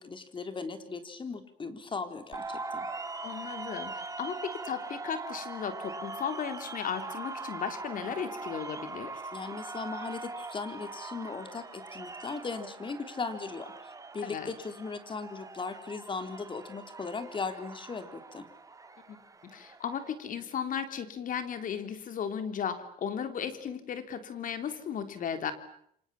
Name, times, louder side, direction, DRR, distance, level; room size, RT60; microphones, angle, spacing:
voice 1, 0.0-2.9 9.3-18.5, left 4 dB, 30° left, 9 dB, 3.8 m, -38 dB
sound 1, 2.3-20.1, right 3 dB, 20° right, 2.3 m, -42 dB
voice 2, 3.2-9.1 14.2-14.5 19.1-25.5, left 7 dB, 50° left, 9 dB, 3.6 m, -35 dB
29.5 x 26.0 x 7.3 m, 0.68 s
cardioid pair, 110°, 17 cm